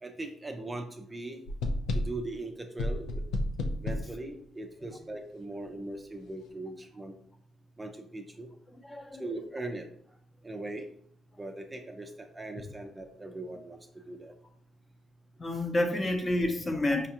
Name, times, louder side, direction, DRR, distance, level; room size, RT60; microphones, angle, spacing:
voice 1, 0.0-1.4 2.0-3.2 3.8-7.1 7.8-8.5 9.2-9.9 10.4-10.8 11.4-13.8 14.1-14.3, right 2 dB, 20° right, 4 dB, 0.4 m, -40 dB
sound 1, 1.5-2.3 2.8-4.1, left 1 dB, 85° left, 0.4 m, -31 dB
voice 2, 8.8-9.3 15.4-17.1, left 1 dB, 25° left, 3 dB, 0.7 m, -29 dB
4.9 x 2.3 x 2.8 m, 0.65 s
cardioid pair, 90°, 0 cm